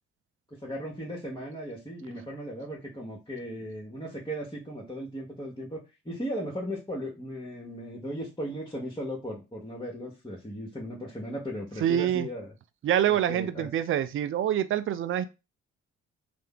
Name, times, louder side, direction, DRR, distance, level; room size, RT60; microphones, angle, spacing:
voice 1, 0.6-12.5 13.1-13.7, equal, 10° left, -4 dB, 1.0 m, -37 dB
voice 2, 11.8-12.3 12.8-15.2, right 10 dB, 35° right, 14 dB, 0.4 m, -26 dB
3.2 x 2.0 x 3.7 m, 0.27 s
figure-of-eight pair, 45°, 35 cm